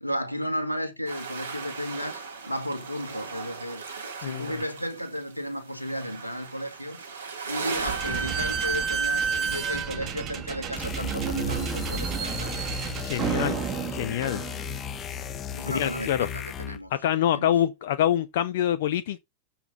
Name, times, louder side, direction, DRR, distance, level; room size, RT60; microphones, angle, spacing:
voice 1, 0.0-3.8 4.2-7.0 7.4-12.7 15.5-17.6, equal, 90° left, 1.5 m, -34 dB
sound 1, 1.1-9.8, right 5 dB, 70° right, 3.0 m, -38 dB
Slam / Squeak, 7.7-15.0, right 7 dB, 30° right, 1.6 m, -30 dB
sound 2, 10.8-16.9, left 6 dB, 25° left, 0.8 m, -35 dB
voice 2, 13.0-13.6 13.9-14.4 15.7-16.3 16.9-19.2, left 11 dB, 55° left, 0.6 m, -25 dB
7.0 x 5.7 x 6.7 m
figure-of-eight pair, 90°, 0 cm